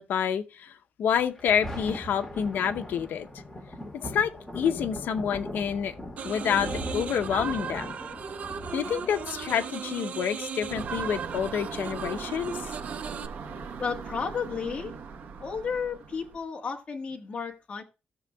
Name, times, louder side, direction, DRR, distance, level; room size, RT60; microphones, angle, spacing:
voice 1, 0.0-3.3 3.9-5.9 6.2-8.0 8.7-12.7, left 8 dB, 80° left, 0.8 m, -28 dB
Thunder, 1.1-12.1 12.8-12.9, left 1 dB, 10° left, 2.1 m, -40 dB
sound 1, 6.2-13.3, right 7 dB, 45° right, 0.5 m, -37 dB
sound 2, 10.7-16.4, right 5 dB, 85° right, 1.1 m, -40 dB
voice 2, 13.8-15.0 15.4-17.8, left 6 dB, 35° left, 1.4 m, -33 dB
16.5 x 6.9 x 2.3 m
wide cardioid pair, 175°, 3 cm